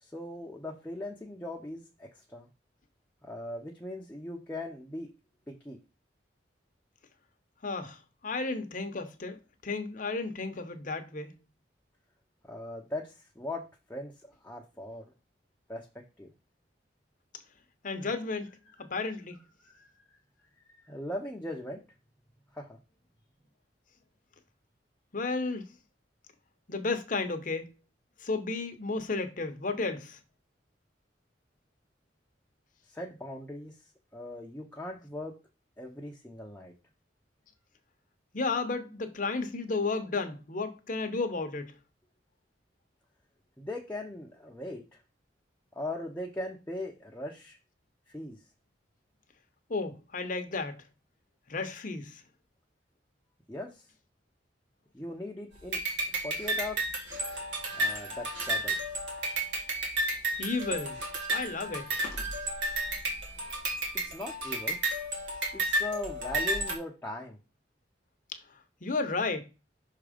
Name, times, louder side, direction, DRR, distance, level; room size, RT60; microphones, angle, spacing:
voice 1, 0.0-2.5 3.2-5.1 5.5-5.8 12.4-15.1 15.7-15.9 16.2-16.3 19.6-19.9 20.8-21.8 22.5-22.8 32.9-33.8 34.1-35.4 35.8-36.7 43.6-45.0 45.7-47.6 48.1-48.4 53.5-53.8 54.9-55.8 56.2-56.9 57.8-58.8 63.9-64.8 65.5-67.4, left 1 dB, 10° left, 0.8 m, -39 dB
voice 2, 7.6-9.4 9.6-11.4 17.8-19.4 25.1-25.7 26.7-27.7 28.2-30.2 38.3-41.8 49.7-50.8 51.5-52.2 60.4-61.0 61.3-62.0 68.8-69.5, left 3 dB, 45° left, 0.9 m, -33 dB
sound 1, 55.7-66.7, right 1 dB, 85° right, 2.0 m, -32 dB
5.8 x 3.7 x 5.0 m
head